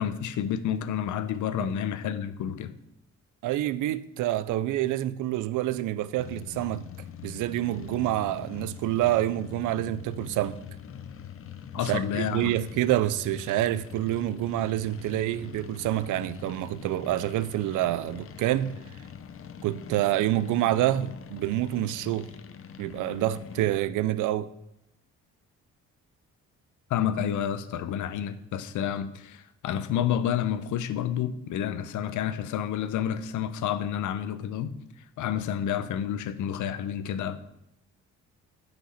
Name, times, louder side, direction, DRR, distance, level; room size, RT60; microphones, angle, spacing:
voice 1, 0.0-2.7 11.7-12.5 26.9-34.7 35.2-37.4, left 9 dB, 80° left, 0.8 m, -29 dB
voice 2, 3.4-6.9 7.2-10.6 11.8-18.8 19.6-22.3 22.8-24.5, right 14 dB, 85° right, 0.5 m, -27 dB
sound 1, 6.2-23.8, left 8 dB, 45° left, 0.8 m, -43 dB
8.7 x 6.1 x 5.6 m
cardioid pair, 90°, 30 cm